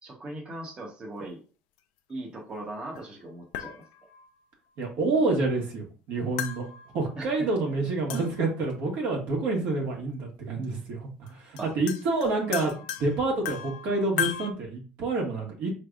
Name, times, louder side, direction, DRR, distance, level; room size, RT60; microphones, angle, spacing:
voice 1, 0.0-1.4 2.1-3.8 7.2-7.3 11.6-11.7, right 1 dB, 25° right, -2 dB, 1.1 m, -39 dB
sound 1, 3.0-3.1 3.5-4.3 6.4-7.3 8.1-8.7 10.1-10.2 11.3-11.4 11.6-14.5, left 11 dB, 90° left, 0.5 m, -36 dB
voice 2, 4.8-6.6 6.9-15.7, right 3 dB, 60° right, 0 dB, 1.5 m, -28 dB
4.5 x 3.3 x 2.5 m, 0.36 s
cardioid pair, 140°, 4 cm